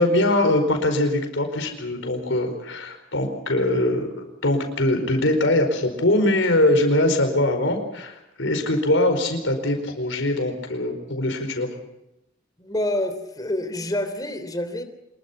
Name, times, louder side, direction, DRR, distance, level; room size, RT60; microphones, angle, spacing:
voice 1, 0.0-11.7, left 1 dB, 70° left, 5 dB, 4.8 m, -22 dB
voice 2, 12.6-14.8, left 1 dB, 20° left, 8 dB, 3.4 m, -27 dB
26.0 x 22.0 x 5.8 m, 0.89 s
head